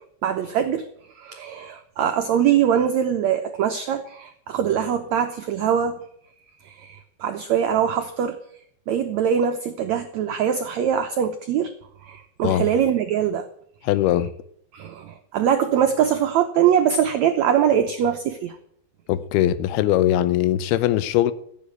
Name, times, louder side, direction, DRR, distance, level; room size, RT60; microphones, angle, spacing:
voice 1, 0.2-0.9 1.1-6.0 6.6-8.4 8.9-11.7 12.0-13.5 14.7-18.5, right 9 dB, 85° right, 1.5 m, -22 dB
voice 2, 13.8-14.3 19.1-21.3, left 12 dB, 85° left, 2.8 m, -20 dB
15.0 x 7.9 x 9.7 m
omnidirectional pair, 4.4 m